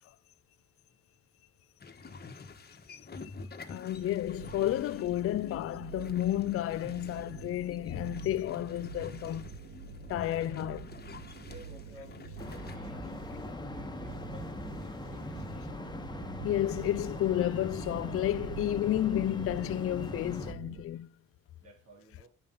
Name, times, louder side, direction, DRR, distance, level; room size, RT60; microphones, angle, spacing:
sound 1, 1.8-12.8, left 4 dB, 30° left, 1.3 m, -48 dB
voice 1, 2.9-3.3 3.7-9.5 10.1-10.9 16.4-21.1, left 13 dB, 50° left, 0.4 m, -31 dB
sound 2, 3.9-20.8, right 6 dB, 65° right, 2.0 m, -46 dB
voice 2, 11.4-12.2 12.5-13.3 13.7-15.4 21.6-22.3, equal, 80° right, 3.8 m, -54 dB
sound 3, 12.4-20.5, left 2 dB, 15° left, 1.3 m, -41 dB
10.0 x 5.5 x 5.5 m
cardioid pair, 90°, 30 cm